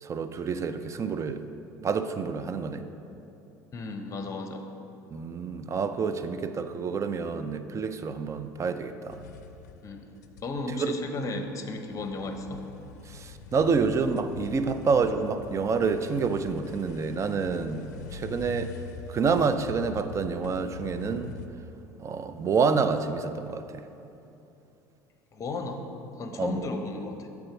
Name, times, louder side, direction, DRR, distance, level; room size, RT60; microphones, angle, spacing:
voice 1, 0.0-1.4 1.8-2.9 5.1-9.2 10.8-11.0 13.1-18.7 19.1-21.3 22.0-23.8 26.4-26.7, right 5 dB, 35° right, 10 dB, 0.4 m, -28 dB
voice 2, 3.7-4.6 9.8-10.1 10.4-12.6 25.3-25.9 26.2-27.3, left 3 dB, 35° left, 6 dB, 0.7 m, -34 dB
sound 1, 9.1-10.6 10.8-21.5, left 5 dB, 90° left, 0.4 m, -43 dB
7.9 x 3.5 x 5.9 m, 2.8 s
hypercardioid pair, 75°, 9 cm